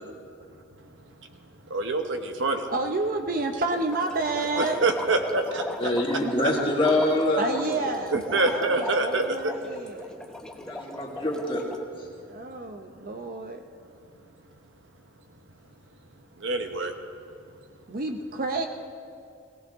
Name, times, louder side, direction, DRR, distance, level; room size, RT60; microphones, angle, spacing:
voice 1, 1.7-2.7 4.6-5.7 8.1-9.5 16.4-16.9, right 2 dB, 65° right, 5 dB, 1.1 m, -25 dB
voice 2, 2.7-4.8 7.4-10.2 12.3-13.7 17.9-18.7, right 2 dB, 45° right, 4 dB, 0.7 m, -30 dB
sound 1, 3.7-11.8, left 1 dB, 5° left, 0.7 m, -38 dB
voice 3, 5.8-7.8 10.6-11.6, left 1 dB, 25° left, -1 dB, 1.9 m, -25 dB
18.5 x 17.0 x 3.6 m, 2.4 s
head